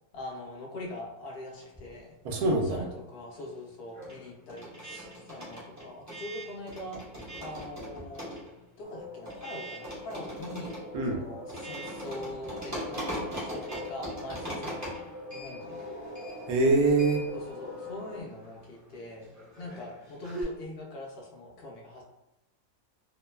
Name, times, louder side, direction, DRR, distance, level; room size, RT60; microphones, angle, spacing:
voice 1, 0.1-2.1 2.7-7.0 7.4-8.3 8.8-10.8 11.1-15.9 17.3-19.3 19.6-22.0, left 1 dB, 55° left, -2 dB, 0.8 m, -42 dB
sound 1, 1.6-2.9 3.1-20.4, equal, 25° right, 0.4 m, -41 dB
voice 2, 2.2-2.8 10.9-11.2 16.5-17.2, right 2 dB, 80° right, 1 dB, 1.1 m, -24 dB
sound 2, 8.8-18.2, left 2 dB, 55° right, 1.1 m, -43 dB
2.9 x 2.1 x 2.2 m, 0.90 s
omnidirectional pair, 1.5 m